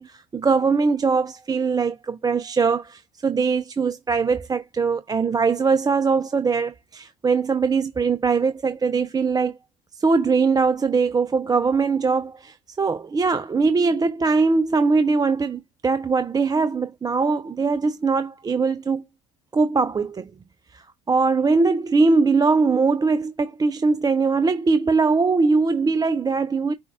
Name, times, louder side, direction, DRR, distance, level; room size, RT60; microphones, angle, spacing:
voice 1, 0.0-9.6 10.0-19.0 19.5-20.3 20.7-26.7, right 4 dB, 20° right, 0.5 m, -21 dB
6.1 x 2.3 x 3.5 m
supercardioid pair, 85°, 18 cm